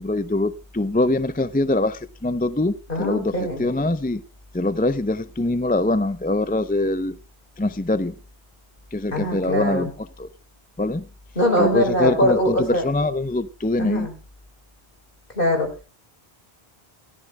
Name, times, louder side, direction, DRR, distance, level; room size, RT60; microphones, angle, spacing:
voice 1, 0.0-4.2 4.5-7.2 7.6-8.1 8.9-9.9 10.2-10.3 10.8-11.0 11.6-14.1, left 2 dB, 10° left, 0.5 m, -23 dB
voice 2, 2.9-3.6 9.1-9.9 11.4-12.8 13.8-14.1 15.4-15.9, left 1 dB, 55° left, 4.0 m, -22 dB
27.5 x 13.5 x 2.2 m
omnidirectional pair, 1.1 m